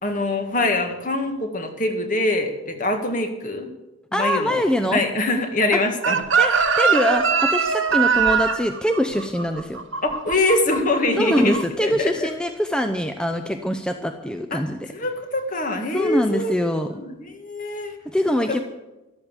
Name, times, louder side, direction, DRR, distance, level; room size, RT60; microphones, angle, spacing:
voice 1, 0.0-3.7 4.1-4.6 4.9-6.2 10.0-12.3 14.5-14.6 14.9-16.5 16.9-18.0 18.5-18.6, left 2 dB, 40° left, 5 dB, 1.8 m, -24 dB
voice 2, 4.1-5.0 5.7-5.8 6.4-9.8 11.2-14.9 15.9-17.0 18.1-18.6, equal, 5° left, 6 dB, 0.6 m, -23 dB
Chicken rooster, 6.0-11.0 11.3-11.6, right 5 dB, 80° right, 1.5 m, -21 dB
13.0 x 12.5 x 7.2 m, 1.0 s
head